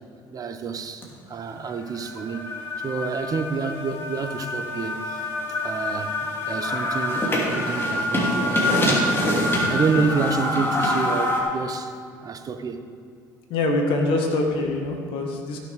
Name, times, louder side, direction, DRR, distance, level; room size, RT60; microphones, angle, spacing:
voice 1, 0.3-2.5 2.8-5.3 5.6-6.2 6.5-9.1 9.7-11.9 12.2-12.8, right 5 dB, 40° right, 1.0 m, -28 dB
sound 1, 1.0-1.1 1.5-11.4, left 1 dB, 25° left, 3.0 m, -25 dB
voice 2, 13.5-15.6, left 2 dB, 65° left, 2.0 m, -24 dB
16.0 x 6.6 x 5.1 m
hypercardioid pair, 70°, 10 cm